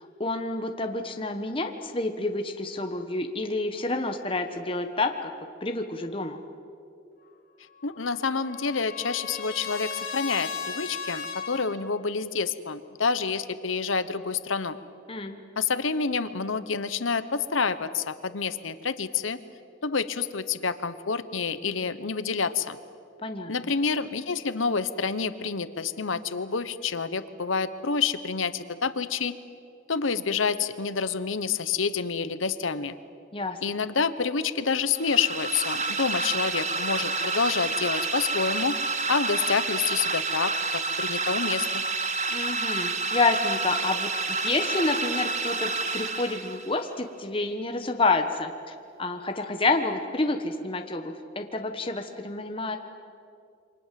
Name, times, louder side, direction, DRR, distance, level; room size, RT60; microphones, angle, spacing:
voice 1, 0.0-5.3 5.6-6.4 15.1-15.4 23.2-23.5 33.3-33.6 42.3-48.5 49.0-52.8, left 3 dB, 25° left, 5 dB, 1.3 m, -28 dB
voice 2, 7.8-14.8 15.6-19.4 19.8-22.8 23.5-29.3 29.9-33.0 33.6-38.8 39.1-41.8, left 5 dB, 85° left, 13 dB, 1.1 m, -28 dB
Trumpet, 7.8-11.7, left 6 dB, 45° left, 4.4 m, -36 dB
sound 1, 34.9-46.8, right 3 dB, 35° right, 1.5 m, -29 dB
28.5 x 24.5 x 7.7 m, 2.4 s
head